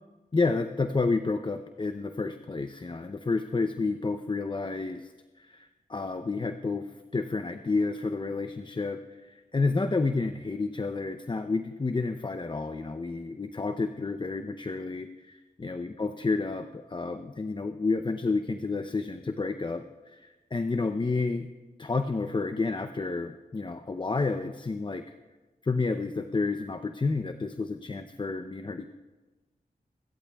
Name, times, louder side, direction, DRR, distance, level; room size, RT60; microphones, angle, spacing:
voice 1, 0.3-5.1 5.4-21.5 21.8-25.1 25.6-28.9, left 3 dB, 30° left, 8 dB, 0.6 m, -30 dB
24.5 x 13.5 x 2.3 m, 1.2 s
cardioid pair, 55°, 15 cm